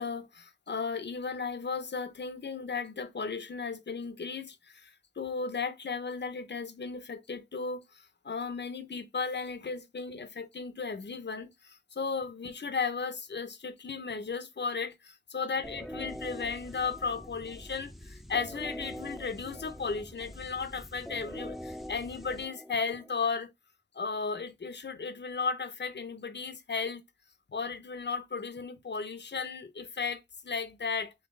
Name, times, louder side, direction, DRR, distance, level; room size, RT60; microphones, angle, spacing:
voice 1, 0.0-23.5 23.9-27.0 27.5-31.1, left 5 dB, 70° left, 0.7 m, -35 dB
sound 1, 15.6-23.3, equal, ahead, 0.5 m, -44 dB
3.9 x 2.9 x 3.6 m
wide cardioid pair, 45°, 19 cm